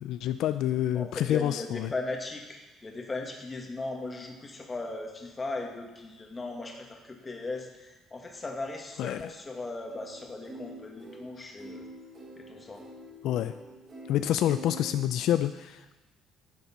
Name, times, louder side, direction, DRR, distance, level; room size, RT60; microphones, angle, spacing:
voice 1, 0.0-1.9 9.0-9.3 13.2-13.5 14.1-16.0, left 12 dB, 70° left, 11 dB, 0.3 m, -28 dB
voice 2, 0.9-11.8 12.4-12.8, left 2 dB, 20° left, 2 dB, 1.5 m, -38 dB
sound 1, 9.9-15.0, equal, 25° right, 3.4 m, -46 dB
10.0 x 7.0 x 5.6 m, 1.1 s
cardioid pair, 135°, 0 cm